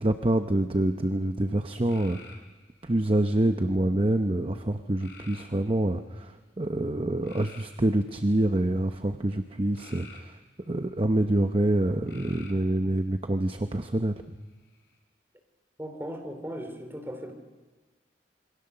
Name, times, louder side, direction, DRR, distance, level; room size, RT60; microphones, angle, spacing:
voice 1, 0.0-2.2 2.8-6.3 6.6-10.3 10.7-14.2, right 1 dB, 30° right, 7 dB, 0.7 m, -26 dB
sound 1, 1.9-2.9 5.0-5.8 7.2-8.5 9.8-10.9 12.0-12.7 14.4-14.9, left 4 dB, 65° left, 5.0 m, -50 dB
voice 2, 15.8-17.3, equal, 10° right, 4 dB, 3.3 m, -37 dB
27.5 x 23.5 x 6.8 m, 1.3 s
head